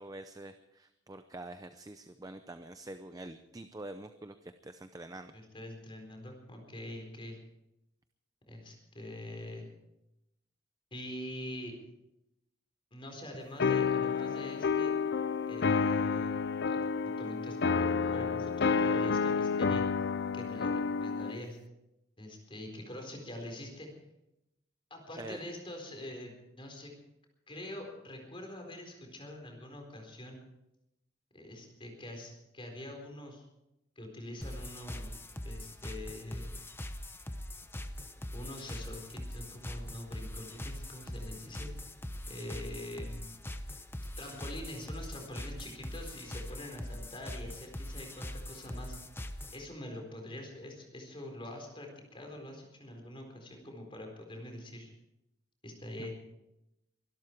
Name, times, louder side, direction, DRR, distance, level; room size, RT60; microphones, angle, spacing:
voice 1, 0.0-5.3 25.2-25.4 56.0-56.1, right 2 dB, 20° right, 9 dB, 0.6 m, -46 dB
voice 2, 5.3-7.4 8.5-9.7 10.9-11.8 12.9-14.9 15.5-16.3 16.7-19.8 20.3-21.6 22.2-23.9 24.9-26.9 27.5-30.4 31.3-33.4 34.0-35.1 35.4-36.6 38.3-41.7 42.3-43.3 44.2-48.9 49.5-54.9 55.6-56.1, left 1 dB, 25° left, 3 dB, 4.2 m, -44 dB
sound 1, 13.6-21.4, left 5 dB, 60° left, 0.6 m, -30 dB
sound 2, 34.4-49.6, left 1 dB, 10° left, 0.9 m, -42 dB
23.5 x 12.5 x 4.6 m, 0.88 s
head